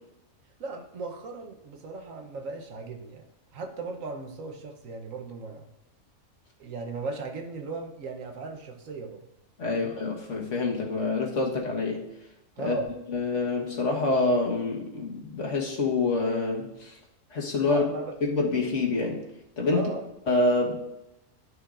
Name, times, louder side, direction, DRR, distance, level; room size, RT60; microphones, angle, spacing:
voice 1, 0.6-5.7 6.6-9.3 9.7-10.0 12.6-12.9 17.6-18.2 19.7-20.1, right 3 dB, 75° right, 4 dB, 1.4 m, -37 dB
voice 2, 9.6-12.0 12.6-12.8 13.1-16.9 17.3-17.8 18.2-19.2 19.6-19.8 20.3-20.7, left 3 dB, 65° left, -1 dB, 1.7 m, -26 dB
12.5 x 6.3 x 2.5 m, 0.92 s
omnidirectional pair, 1.4 m